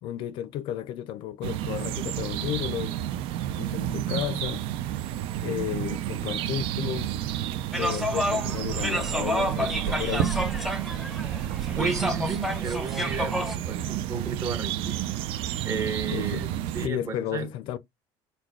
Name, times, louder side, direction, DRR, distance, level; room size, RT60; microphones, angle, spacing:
voice 1, 0.0-2.9 3.5-4.9 5.4-7.2 7.8-10.3 16.1-16.4 16.8-17.8, left 11 dB, 55° left, 0.4 m, -33 dB
sound 1, 1.4-16.9, right 11 dB, 65° right, 0.5 m, -31 dB
sound 2, 7.7-13.6, equal, ahead, 0.7 m, -30 dB
voice 2, 11.7-15.0 15.6-17.5, right 5 dB, 35° right, 1.1 m, -32 dB
4.3 x 2.2 x 4.5 m
cardioid pair, 150°, 10 cm